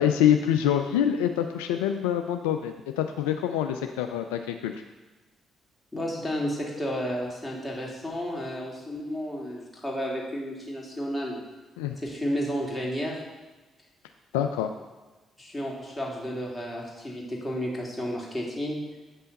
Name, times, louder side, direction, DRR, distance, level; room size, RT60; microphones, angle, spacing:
voice 1, 0.0-4.8 11.8-12.0 14.3-14.7, left 10 dB, 75° left, 6 dB, 0.3 m, -25 dB
voice 2, 5.9-11.4 12.0-13.2 15.4-18.8, equal, 15° left, -2 dB, 2.2 m, -32 dB
8.0 x 5.5 x 3.9 m, 1.2 s
figure-of-eight pair, 40°, 0 cm